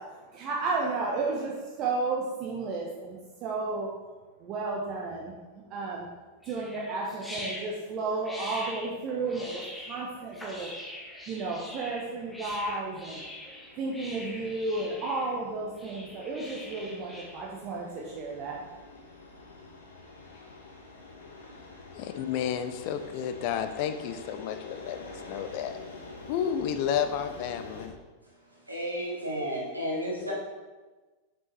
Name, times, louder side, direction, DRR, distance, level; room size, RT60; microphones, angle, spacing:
voice 1, 0.0-3.9 4.4-5.4 5.7-6.1 6.5-10.7 11.3-13.2 13.8-18.6, right 3 dB, 35° right, -2 dB, 0.8 m, -33 dB
sound 1, 6.4-17.4, left 1 dB, 5° left, 1.0 m, -43 dB
sound 2, 8.9-27.9, left 3 dB, 70° left, 0.9 m, -48 dB
voice 2, 21.9-25.8 26.3-28.0, left 8 dB, 45° left, 9 dB, 0.4 m, -31 dB
voice 3, 28.7-30.3, equal, 85° right, -4 dB, 1.6 m, -32 dB
5.7 x 5.3 x 3.1 m, 1.3 s
figure-of-eight pair, 90°, 0 cm